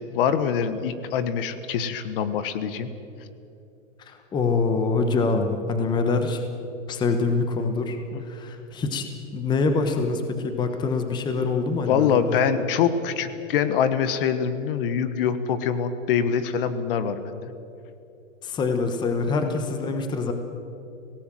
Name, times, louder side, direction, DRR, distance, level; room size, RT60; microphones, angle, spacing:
voice 1, 0.0-2.9 8.1-8.2 11.9-17.5 19.3-19.7, left 7 dB, 45° left, 12 dB, 1.3 m, -24 dB
voice 2, 4.0-6.4 6.9-9.0 9.3-12.4 18.4-20.3, left 3 dB, 10° left, 6 dB, 1.2 m, -25 dB
25.5 x 18.0 x 7.6 m, 2.8 s
hypercardioid pair, 155°, 38 cm